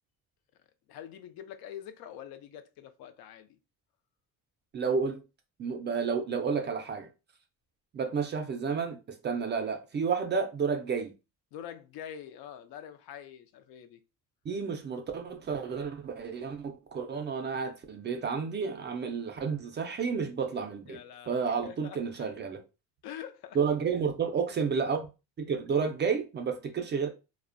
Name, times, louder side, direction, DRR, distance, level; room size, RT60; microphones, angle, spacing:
voice 1, 0.9-3.6 11.5-14.0 20.9-22.3 23.0-23.6, left 9 dB, 70° left, 0.5 m, -45 dB
voice 2, 4.7-5.2 5.6-7.1 7.9-9.0 9.2-11.1 14.5-21.0 21.3-22.6 23.5-25.1 25.4-27.1, right 5 dB, 30° right, 0.3 m, -31 dB
2.5 x 2.1 x 2.4 m
cardioid pair, 125°, 37 cm